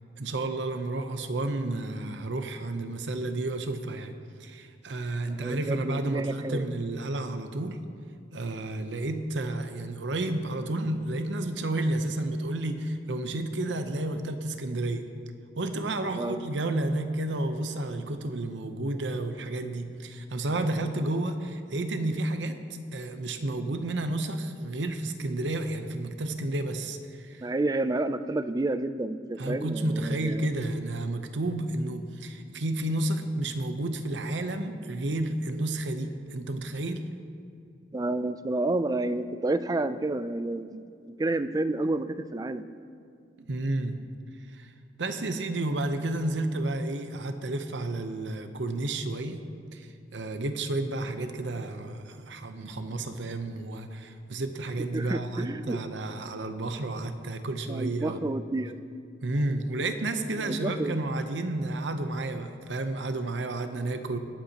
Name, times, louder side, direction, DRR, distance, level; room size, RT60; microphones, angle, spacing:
voice 1, 0.2-4.1 4.4-7.8 8.3-15.1 15.6-22.6 22.9-27.5 29.4-37.0 43.4-44.0 44.5-44.7 45.0-49.4 49.7-58.4 59.2-64.2, right 2 dB, 85° right, 8 dB, 0.8 m, -31 dB
voice 2, 5.3-6.6 16.2-16.4 27.4-30.5 37.9-42.7 54.9-55.8 57.7-58.8 60.4-61.1, right 2 dB, 20° right, 11 dB, 0.4 m, -30 dB
21.5 x 8.1 x 2.9 m, 2.3 s
head